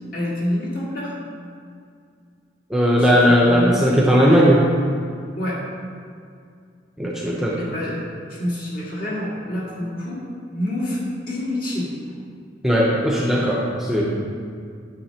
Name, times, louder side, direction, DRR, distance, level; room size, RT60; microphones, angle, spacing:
voice 1, 0.1-1.1 3.0-4.1 5.4-5.6 7.6-10.2 10.5-11.9, left 1 dB, 50° left, -6 dB, 1.8 m, -27 dB
voice 2, 2.7-4.7 7.0-7.6 12.6-14.1, equal, ahead, -4 dB, 0.6 m, -17 dB
8.9 x 6.7 x 2.8 m, 2.3 s
head